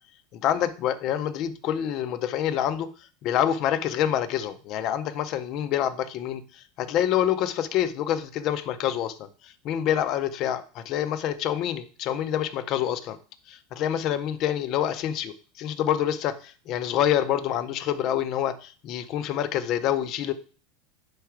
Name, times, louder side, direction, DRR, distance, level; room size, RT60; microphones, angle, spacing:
voice 1, 0.3-2.9 3.2-13.2 13.5-20.3, left 10 dB, 45° left, 12 dB, 0.5 m, -27 dB
4.8 x 4.7 x 4.5 m, 0.39 s
supercardioid pair, 150°, 0 cm